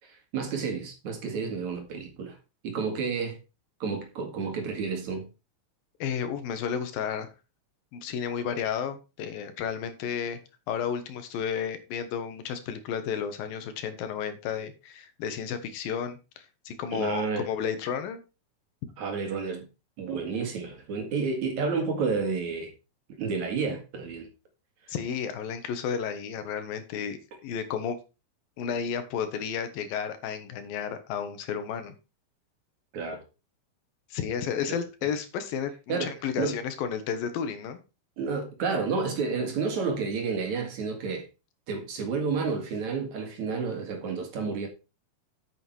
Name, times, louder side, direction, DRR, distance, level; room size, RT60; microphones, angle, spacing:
voice 1, 0.0-2.4 2.6-3.4 3.8-5.3 16.9-17.5 19.0-19.7 20.0-22.7 23.2-24.3 32.9-33.2 34.7-34.8 35.9-36.6 38.2-41.3 41.7-44.7, right 5 dB, 55° right, 3.3 m, -30 dB
voice 2, 6.0-7.3 7.9-10.4 10.7-18.2 24.9-28.0 28.6-31.9 34.1-37.8, left 7 dB, 80° left, 3.2 m, -32 dB
8.7 x 8.1 x 4.7 m
omnidirectional pair, 4.1 m